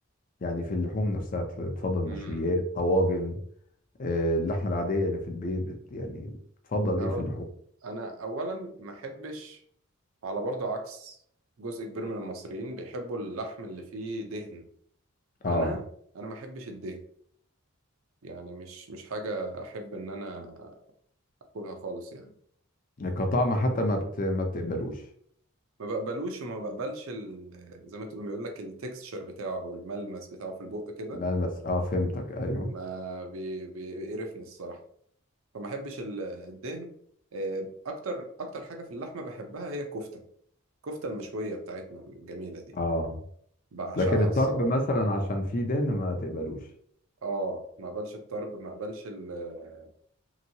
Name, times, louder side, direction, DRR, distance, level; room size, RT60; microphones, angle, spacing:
voice 1, 0.4-3.4 4.0-6.4 6.7-7.3 15.4-15.8 23.0-25.0 31.2-32.7 42.7-43.2 44.0-46.6, left 1 dB, 40° left, 4 dB, 0.5 m, -28 dB
voice 2, 2.0-2.5 7.0-7.3 7.8-9.6 10.2-11.2 11.6-14.6 15.5-15.8 16.1-17.0 18.2-20.7 21.5-22.3 25.8-31.2 32.6-34.8 35.5-36.9 37.3-40.2 40.8-42.7 43.7-44.7 47.2-49.9, right 2 dB, 70° right, 5 dB, 0.6 m, -36 dB
2.9 x 2.6 x 2.7 m, 0.64 s
head